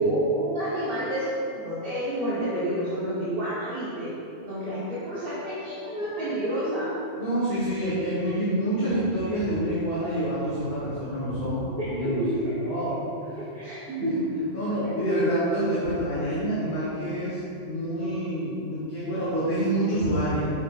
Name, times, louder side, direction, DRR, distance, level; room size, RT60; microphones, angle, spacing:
voice 1, 0.0-4.1 4.4-7.0 11.8-12.7 13.5-14.5 14.8-15.3, right 1 dB, 45° right, -11 dB, 1.5 m, -29 dB
voice 2, 7.2-13.0 14.0-14.2 14.5-20.5, right 1 dB, 55° left, -10 dB, 1.7 m, -27 dB
8.2 x 6.3 x 2.5 m, 2.6 s
omnidirectional pair, 1.3 m